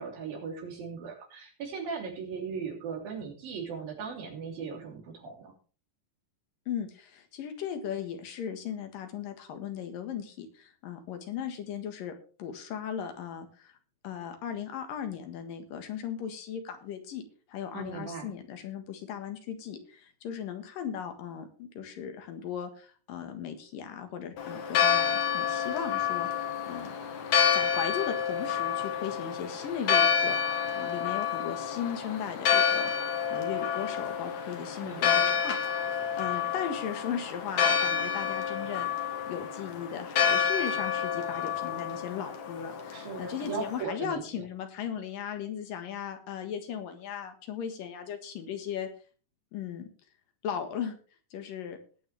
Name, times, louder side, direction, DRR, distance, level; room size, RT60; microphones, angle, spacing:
voice 1, 0.0-5.5 17.7-18.3 34.8-35.3 42.9-44.4, right 5 dB, 85° right, 0 dB, 5.1 m, -38 dB
voice 2, 6.7-12.1 12.4-13.7 14.0-26.9 27.5-30.4 30.8-35.6 36.2-38.9 39.3-48.9 49.5-49.9 50.4-51.0 51.3-51.8, left 8 dB, 75° left, 7 dB, 3.3 m, -37 dB
Church bell, 24.4-43.8, left 7 dB, 60° left, 2.7 m, -29 dB
19.0 x 8.9 x 3.4 m, 0.39 s
omnidirectional pair, 4.0 m